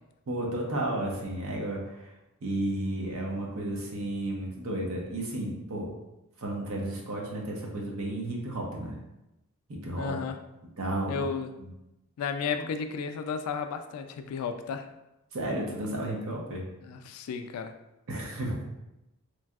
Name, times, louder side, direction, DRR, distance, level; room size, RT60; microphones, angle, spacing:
voice 1, 0.3-2.1 2.4-5.9 6.4-9.0 9.7-10.1 10.8-11.2 11.6-11.7 12.5-12.6 15.3-16.6 18.1-18.6, right 1 dB, 75° right, -1 dB, 0.7 m, -33 dB
voice 2, 10.0-10.4 11.1-11.5 12.2-14.9 16.8-17.7, left 6 dB, 90° left, 10 dB, 0.3 m, -33 dB
3.1 x 2.6 x 2.3 m, 0.93 s
head